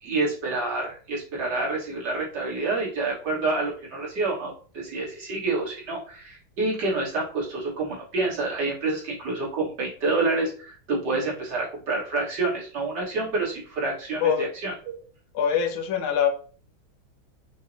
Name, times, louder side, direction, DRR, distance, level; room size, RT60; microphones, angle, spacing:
voice 1, 0.0-15.0, right 3 dB, 60° right, -4 dB, 1.9 m, -28 dB
voice 2, 15.3-16.3, left 8 dB, 80° left, 5 dB, 1.4 m, -23 dB
6.1 x 2.1 x 2.6 m, 0.41 s
omnidirectional pair, 2.3 m